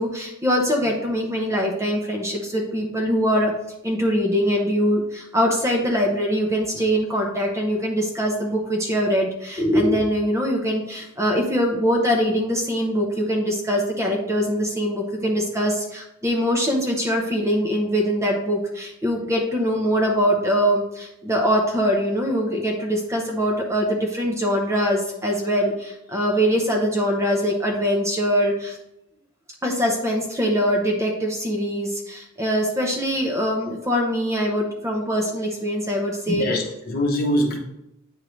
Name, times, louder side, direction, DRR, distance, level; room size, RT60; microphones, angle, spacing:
voice 1, 0.0-3.5 3.8-28.8 29.6-36.5, equal, 15° right, 1 dB, 0.7 m, -23 dB
voice 2, 36.3-37.6, left 1 dB, 45° left, 1 dB, 1.0 m, -23 dB
8.9 x 3.7 x 3.2 m, 0.86 s
head